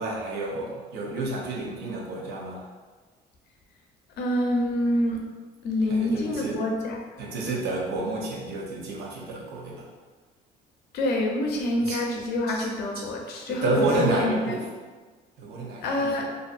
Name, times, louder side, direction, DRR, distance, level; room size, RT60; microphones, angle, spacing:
voice 1, 0.0-2.6 5.8-6.6 7.2-9.9 11.8-12.0 12.5-12.7 12.9-13.0 13.5-14.7 15.4-16.3, right 2 dB, 75° right, -2 dB, 0.6 m, -30 dB
voice 2, 4.2-5.2 5.6-7.0 10.9-14.4 15.8-16.3, left 1 dB, 70° left, 0 dB, 0.5 m, -26 dB
2.5 x 2.4 x 2.4 m, 1.4 s
cardioid pair, 110°, 17 cm